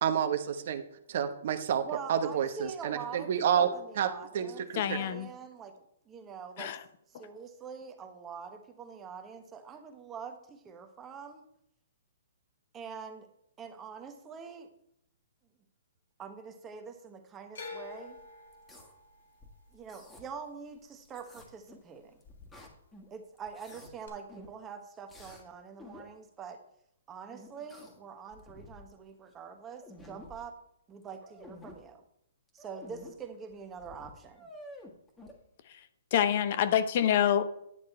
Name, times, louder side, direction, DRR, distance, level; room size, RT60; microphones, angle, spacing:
voice 1, 0.0-0.8 1.1-1.8 2.1-5.2, right 8 dB, 55° right, 9 dB, 0.9 m, -30 dB
voice 2, 1.8-6.7 7.1-11.5 12.7-13.3 13.6-14.7 16.2-18.2 19.7-22.2 23.1-26.6 27.1-30.5 30.9-32.0 32.5-34.5, right 6 dB, 15° right, 6 dB, 1.1 m, -45 dB
voice 3, 4.7-5.3 6.6-6.8 36.1-37.4, left 10 dB, 45° left, 12 dB, 0.7 m, -26 dB
sound 1, 17.5-21.7 22.0-22.7 24.1-24.2, left 4 dB, 75° left, 2.5 m, -48 dB
sound 2, 18.5-18.9 19.4-20.2 21.0-21.9 22.2-23.1 23.4-23.9 24.3-24.6 25.1-25.4 25.8-26.1 27.3-28.0 28.3-28.9 29.3-29.4 29.7-30.4 31.0-31.7 32.5-33.1 33.5-33.6 33.8-35.3, left 1 dB, 10° left, 1.6 m, -51 dB
10.0 x 6.5 x 4.3 m, 0.75 s
hypercardioid pair, 150°, 0 cm